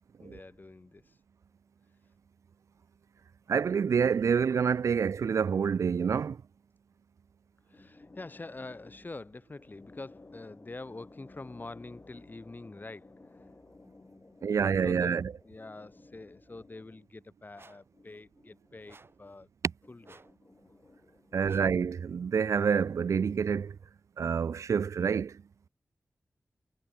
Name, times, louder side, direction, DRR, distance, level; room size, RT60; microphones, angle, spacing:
voice 1, 0.2-1.2 7.7-19.5 19.8-21.8, left 3 dB, 35° left, 4.8 m, -46 dB
voice 2, 3.5-6.4 14.4-15.2 21.3-23.8 24.2-25.3, right 6 dB, 75° right, 0.4 m, -27 dB
sound 1, 17.5-17.9 18.9-19.3 20.0-20.4 21.4-21.8, right 3 dB, 50° right, 6.0 m, -57 dB
wide cardioid pair, 75°, 5 cm